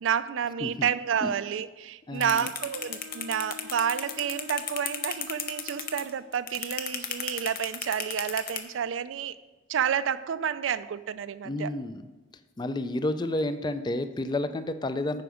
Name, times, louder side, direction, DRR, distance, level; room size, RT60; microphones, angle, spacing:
voice 1, 0.0-9.4 9.7-11.7, right 8 dB, 80° right, 15 dB, 0.4 m, -30 dB
voice 2, 2.1-2.5 11.4-12.0 12.6-15.2, left 1 dB, 20° left, 11 dB, 0.3 m, -30 dB
sound 1, 2.2-8.6, left 8 dB, 50° left, 0.7 m, -33 dB
Bowed string instrument, 2.2-6.2, left 5 dB, 55° right, 0.8 m, -47 dB
9.3 x 5.2 x 5.0 m, 1.2 s
head